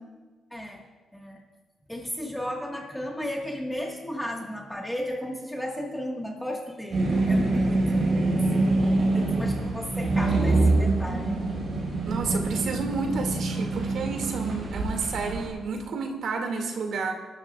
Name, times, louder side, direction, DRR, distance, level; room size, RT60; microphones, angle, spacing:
voice 1, 0.5-0.8 1.1-1.4 1.9-11.3, equal, 5° left, -2 dB, 1.7 m, -34 dB
sound 1, 6.9-15.5, right 2 dB, 40° right, 5.9 m, -25 dB
voice 2, 12.1-17.1, right 4 dB, 70° right, 2 dB, 2.4 m, -30 dB
30.0 x 12.5 x 2.5 m, 1.3 s
wide cardioid pair, 155°, 0 cm